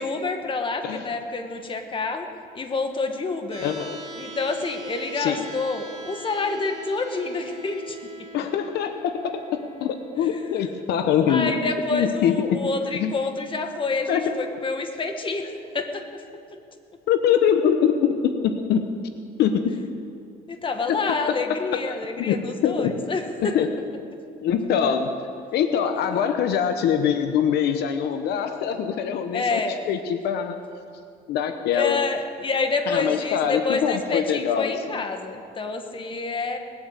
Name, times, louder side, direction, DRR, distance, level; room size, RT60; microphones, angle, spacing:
voice 1, 0.0-2.3 2.5-3.7 4.2-8.0 11.3-16.2 20.5-23.5 29.3-29.8 31.7-36.6, left 3 dB, 30° left, 5 dB, 1.7 m, -28 dB
sound 1, 3.5-15.5, right 3 dB, 35° right, 2.5 m, -43 dB
voice 2, 3.6-4.0 5.1-5.5 8.3-11.6 11.9-12.6 12.9-13.1 14.1-14.4 17.1-18.8 19.4-19.7 20.9-23.0 23.4-23.7 24.4-25.1 25.5-30.5 31.3-32.0 32.9-35.0, left 8 dB, 75° left, 7 dB, 1.0 m, -24 dB
20.0 x 8.5 x 8.2 m, 2.4 s
cardioid pair, 110°, 17 cm